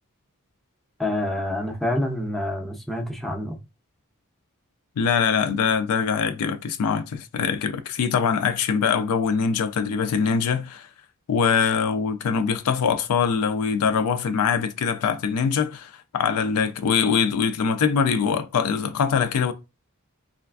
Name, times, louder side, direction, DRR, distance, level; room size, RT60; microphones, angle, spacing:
voice 1, 1.0-3.6, left 1 dB, ahead, 0.5 m, -27 dB
voice 2, 5.0-10.9 11.3-19.5, left 6 dB, 80° left, 0.4 m, -23 dB
3.2 x 2.4 x 2.3 m
head